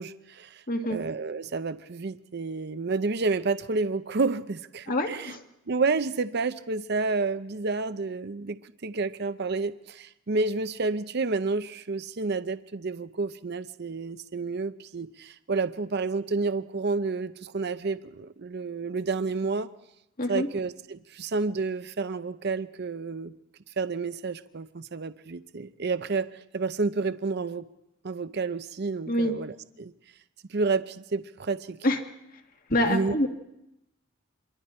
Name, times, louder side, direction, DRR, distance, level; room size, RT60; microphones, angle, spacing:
voice 1, 0.0-0.6 0.9-5.3 5.7-19.7 20.3-23.3 23.8-27.7 28.0-29.9 30.5-31.8 32.8-33.2, right 4 dB, 55° right, 12 dB, 0.7 m, -30 dB
voice 2, 4.9-5.4 20.2-20.5 29.1-29.3 31.8-32.0 32.7-33.3, left 1 dB, 45° left, 4 dB, 1.8 m, -26 dB
27.0 x 23.0 x 4.4 m, 0.87 s
head